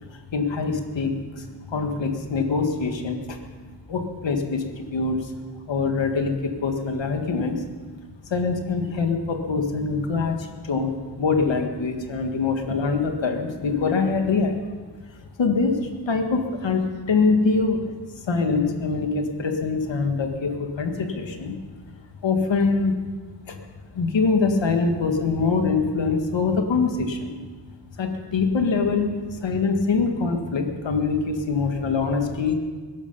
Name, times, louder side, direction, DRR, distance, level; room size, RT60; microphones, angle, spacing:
voice 1, 0.3-3.4 3.9-5.3 5.7-7.6 8.3-14.5 15.4-17.9 18.3-21.5 22.2-22.9 23.5-23.6 23.9-27.3 28.0-32.6, left 4 dB, 75° left, 4 dB, 1.9 m, -24 dB
21.0 x 12.0 x 5.5 m, 1.5 s
wide cardioid pair, 110°, 44 cm